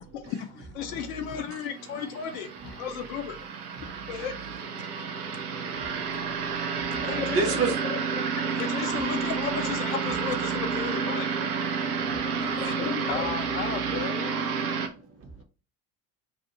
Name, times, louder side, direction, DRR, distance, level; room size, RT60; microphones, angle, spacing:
voice 1, 0.7-3.4 3.8-4.5 7.0-8.0 8.6-11.5 12.2-13.3, left 7 dB, 60° left, 0.7 m, -35 dB
sound 1, 1.4-14.9, right 6 dB, 75° right, 0.7 m, -30 dB
voice 2, 4.8-6.9 7.3-7.7 11.7-12.6 14.6-15.4, right 4 dB, 30° right, 0.8 m, -34 dB
voice 3, 5.5-6.6 7.0-7.1 11.9-14.4, left 7 dB, 25° left, 0.5 m, -38 dB
2.7 x 2.5 x 3.9 m
figure-of-eight pair, 65°, 46 cm